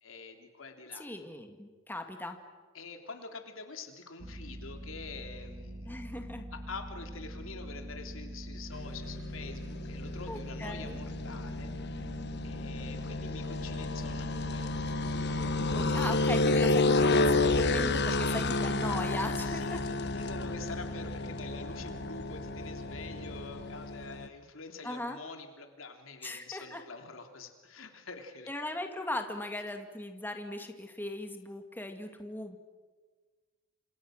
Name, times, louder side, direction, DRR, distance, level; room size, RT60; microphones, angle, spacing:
voice 1, 0.0-1.1 2.7-6.0 6.5-12.2 12.4-15.2 18.1-18.4 19.5-28.5, left 4 dB, 80° left, 5 dB, 3.2 m, -46 dB
voice 2, 0.9-2.4 5.8-6.5 10.3-11.0 15.7-19.8 24.8-25.2 26.2-26.8 28.5-32.6, left 1 dB, 10° left, 5 dB, 2.1 m, -38 dB
sound 1, 4.2-23.8, right 1 dB, 25° right, 1.3 m, -44 dB
sound 2, 8.7-24.3, left 2 dB, 55° left, 1.3 m, -31 dB
29.5 x 27.0 x 6.5 m, 1.4 s
head